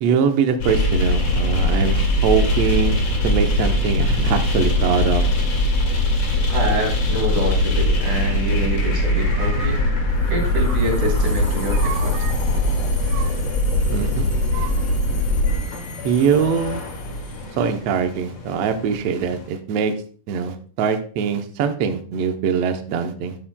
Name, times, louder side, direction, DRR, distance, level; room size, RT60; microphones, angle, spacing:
voice 1, 0.0-5.2 9.3-9.8 11.8-12.3 13.1-13.3 13.9-14.8 16.0-16.8 17.6-19.9 20.3-23.4, right 7 dB, 85° right, 6 dB, 1.4 m, -23 dB
sound 1, 0.6-19.5, left 1 dB, 50° left, 2.7 m, -21 dB
voice 2, 6.5-9.8 10.3-12.1, right 1 dB, 60° right, 1 dB, 3.9 m, -26 dB
12.5 x 7.3 x 2.2 m, 0.44 s
omnidirectional pair, 4.0 m